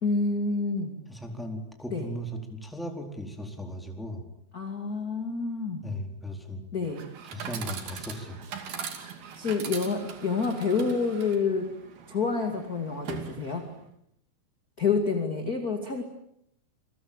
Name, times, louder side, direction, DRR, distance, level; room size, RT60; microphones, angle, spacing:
voice 1, 0.0-1.0 1.9-2.1 4.5-5.9 6.7-7.0 9.4-11.7 12.1-13.7 14.8-16.0, left 4 dB, 30° left, 5 dB, 2.0 m, -28 dB
voice 2, 1.1-4.2 5.8-6.6 7.2-8.5, equal, ahead, 3 dB, 3.5 m, -37 dB
Chatter / Coin (dropping), 6.8-13.9, right 7 dB, 55° right, 4.2 m, -41 dB
28.5 x 23.5 x 9.0 m, 0.74 s
omnidirectional pair, 5.5 m